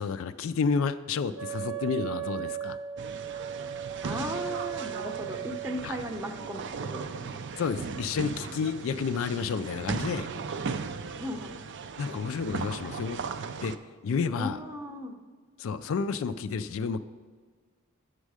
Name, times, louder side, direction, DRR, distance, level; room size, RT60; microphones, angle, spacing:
voice 1, 0.0-2.8 5.8-6.0 7.5-10.3 12.0-13.2 13.6-13.7 14.0-14.6 15.6-17.0, left 5 dB, 60° left, 11 dB, 0.3 m, -30 dB
Wind instrument woodwind instrument, 1.3-5.8, right 11 dB, 75° right, 1.0 m, -36 dB
sound 1, 3.0-13.8, right 5 dB, 50° right, 0.4 m, -37 dB
voice 2, 4.0-7.5 11.2-11.6 14.3-15.2, equal, 10° right, 4 dB, 0.7 m, -37 dB
8.2 x 6.4 x 4.8 m, 1.5 s
head